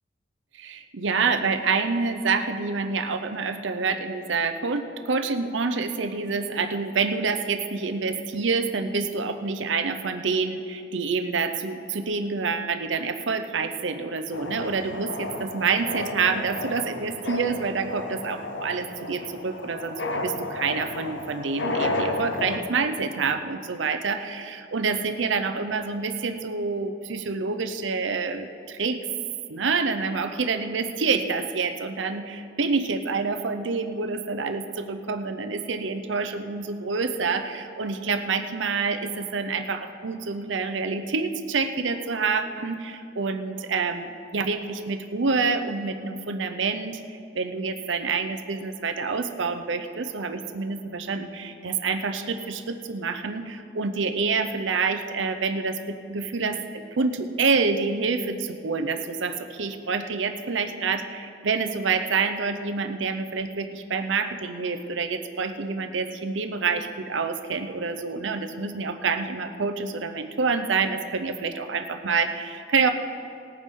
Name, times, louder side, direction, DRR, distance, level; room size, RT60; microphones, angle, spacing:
voice 1, 0.6-29.0 29.5-72.9, right 4 dB, 85° right, 8 dB, 0.7 m, -27 dB
sound 1, 14.3-22.6, left 2 dB, 70° left, 0.9 m, -32 dB
19.0 x 9.3 x 3.7 m, 2.5 s
head